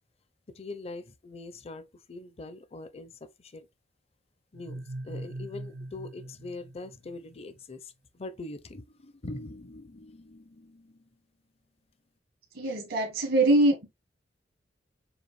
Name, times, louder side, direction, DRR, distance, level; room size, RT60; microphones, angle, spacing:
voice 1, 0.5-3.7 4.5-11.1, left 2 dB, 35° left, 0.5 m, -43 dB
sound 1, 4.5-7.4, right 1 dB, 55° right, 0.4 m, -41 dB
voice 2, 12.5-13.9, right 2 dB, 75° right, 1.3 m, -23 dB
6.9 x 2.4 x 3.1 m
head